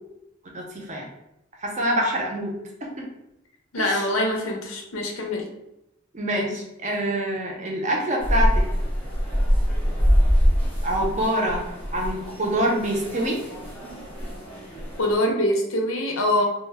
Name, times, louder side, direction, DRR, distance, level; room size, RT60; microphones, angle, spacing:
voice 1, 0.5-1.1 1.6-2.5 3.8-4.0 6.1-8.6 10.8-11.7 11.9-13.4, right 1 dB, 35° right, -1 dB, 0.6 m, -25 dB
voice 2, 3.7-5.4 15.0-16.4, left 1 dB, 80° left, 0 dB, 0.6 m, -24 dB
sound 1, 8.2-15.2, equal, 10° left, 0.8 m, -24 dB
2.1 x 2.1 x 3.3 m, 0.89 s
head